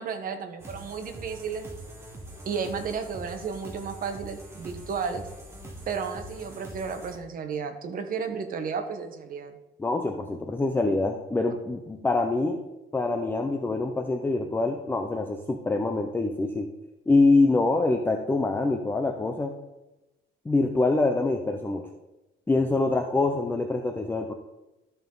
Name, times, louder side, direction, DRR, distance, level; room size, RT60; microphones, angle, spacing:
voice 1, 0.0-1.7 2.4-5.3 5.9-9.6, right 6 dB, 50° right, 6 dB, 1.0 m, -33 dB
sound 1, 0.6-7.2, right 1 dB, 15° right, 1.3 m, -43 dB
voice 2, 9.8-12.6 12.9-16.7 17.1-19.5 20.5-21.9 22.5-24.3, left 3 dB, 10° left, 4 dB, 0.5 m, -25 dB
12.5 x 5.5 x 3.8 m, 1.0 s
cardioid pair, 165°, 19 cm